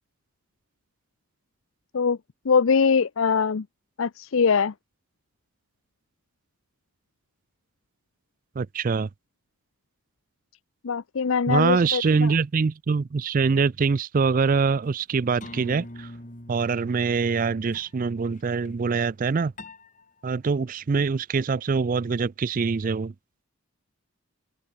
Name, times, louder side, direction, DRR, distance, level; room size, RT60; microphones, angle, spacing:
voice 1, 2.4-3.7 4.0-4.7 10.8-12.3, left 5 dB, 65° left, 0.5 m, -22 dB
voice 2, 8.6-9.1 11.5-16.1 16.5-19.5 20.2-23.1, right 5 dB, 40° right, 0.4 m, -24 dB
sound 1, 15.0-15.1 15.4-17.4 17.7-18.0 18.3-18.7 19.6-20.1, left 1 dB, 35° left, 4.2 m, -43 dB
open air
head